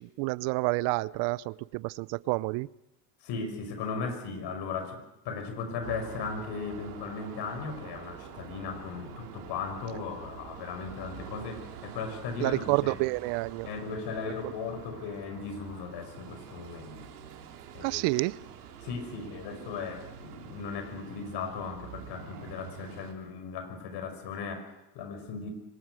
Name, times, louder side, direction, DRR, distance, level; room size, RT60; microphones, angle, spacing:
voice 1, 0.0-2.7 12.4-13.7 14.4-14.5 17.8-18.4, right 23 dB, 70° right, 22 dB, 0.7 m, -29 dB
voice 2, 3.2-13.0 13.6-17.1 17.7-18.0 18.8-25.5, left 5 dB, 65° left, 7 dB, 5.9 m, -37 dB
sound 1, 5.8-23.1, right 8 dB, 90° right, 3.4 m, -46 dB
24.0 x 19.5 x 6.4 m, 0.93 s
supercardioid pair, 85°, 45 cm